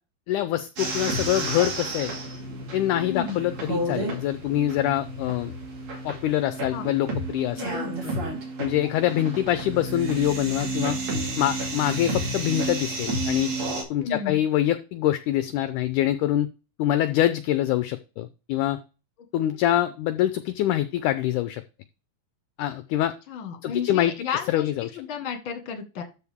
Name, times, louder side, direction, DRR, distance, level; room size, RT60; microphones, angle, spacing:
voice 1, 0.3-2.1 2.7-5.5 6.0-7.6 8.6-11.0 11.4-13.5 13.9-16.5 16.8-18.8 19.3-21.6 22.6-23.1 23.6-24.1 24.5-25.0, left 13 dB, 80° left, 12 dB, 1.9 m, -25 dB
sound 1, 0.8-13.8, right 2 dB, 50° right, 3.6 m, -31 dB
voice 2, 7.6-8.1 14.0-14.4 23.3-26.0, left 7 dB, 45° left, 6 dB, 1.8 m, -32 dB
13.0 x 4.8 x 3.6 m, 0.31 s
omnidirectional pair, 4.1 m